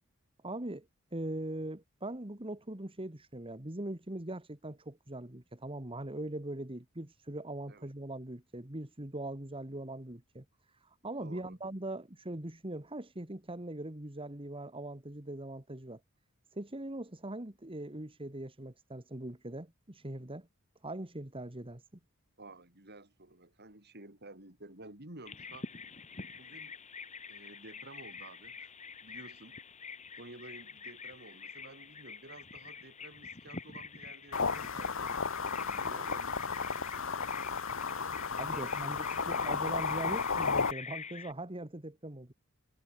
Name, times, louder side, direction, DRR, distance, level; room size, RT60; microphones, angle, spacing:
voice 1, 0.4-16.0 16.5-20.5 20.8-21.8 38.4-42.3, right 1 dB, 25° right, 2.1 m, -41 dB
voice 2, 11.2-11.6 22.4-25.7 26.3-26.7 27.3-28.7 29.0-29.6 30.2-36.3 38.5-39.4, right 2 dB, 50° right, 7.2 m, -52 dB
Bird vocalization bird call bird song, 25.3-41.3, left 5 dB, 35° left, 3.4 m, -46 dB
sound 1, 34.3-40.7, left 5 dB, 65° left, 1.4 m, -33 dB
head